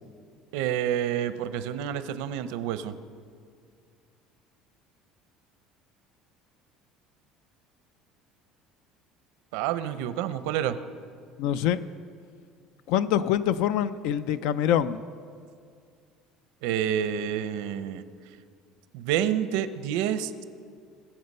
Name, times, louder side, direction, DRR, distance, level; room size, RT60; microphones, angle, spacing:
voice 1, 0.5-3.0 9.5-10.8 16.6-18.0 18.9-20.4, right 10 dB, 85° right, 12 dB, 0.7 m, -28 dB
voice 2, 11.4-11.8 12.9-15.0, left 10 dB, 65° left, 14 dB, 0.4 m, -25 dB
22.5 x 7.8 x 5.4 m, 2.2 s
cardioid pair, 170°, 0 cm